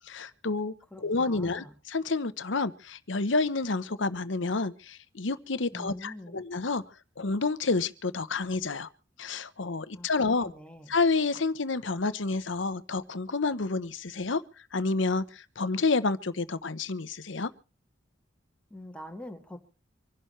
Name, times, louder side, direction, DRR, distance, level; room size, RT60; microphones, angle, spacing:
voice 1, 0.1-6.8 7.2-8.9 9.2-10.5 10.9-14.4 14.7-17.5, left 3 dB, 70° left, 1.0 m, -29 dB
voice 2, 0.9-1.7 5.7-6.4 9.9-10.9 18.7-19.6, left 1 dB, 5° left, 1.8 m, -44 dB
26.0 x 11.5 x 3.2 m
head